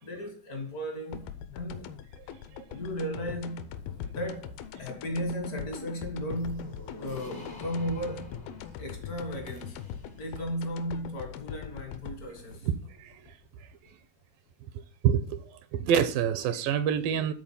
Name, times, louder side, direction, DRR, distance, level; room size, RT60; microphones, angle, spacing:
voice 1, 0.0-2.0 2.7-3.7 4.1-4.5 4.8-8.4 8.8-9.8 10.1-12.7, equal, 60° left, 0.9 m, -35 dB
sound 1, 1.1-13.9, left 9 dB, 80° left, 2.6 m, -42 dB
sound 2, 6.4-10.4, equal, 30° left, 0.4 m, -49 dB
voice 2, 15.0-15.4 15.7-17.3, right 8 dB, 80° right, 2.3 m, -26 dB
13.0 x 4.3 x 5.7 m
omnidirectional pair, 4.4 m